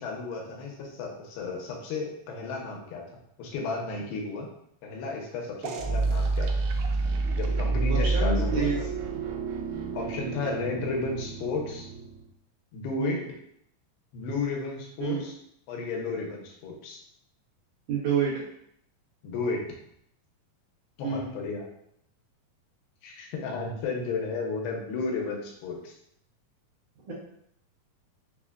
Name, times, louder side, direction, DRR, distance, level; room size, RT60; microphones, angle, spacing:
voice 1, 0.0-3.0 3.4-4.5 4.8-6.5 7.4-8.7 9.9-11.9 12.7-13.2 14.1-15.3 15.7-17.0 19.2-19.6 21.0-21.7 23.0-25.9, left 3 dB, 85° left, -1 dB, 2.6 m, -33 dB
sound 1, 5.6-12.3, right 3 dB, 90° right, 2.4 m, -29 dB
voice 2, 7.9-8.8 13.0-13.3 15.0-15.2 17.9-18.4 21.0-21.3 27.0-27.1, right 6 dB, 70° right, -7 dB, 2.1 m, -28 dB
6.0 x 2.1 x 2.4 m, 0.72 s
omnidirectional pair, 4.3 m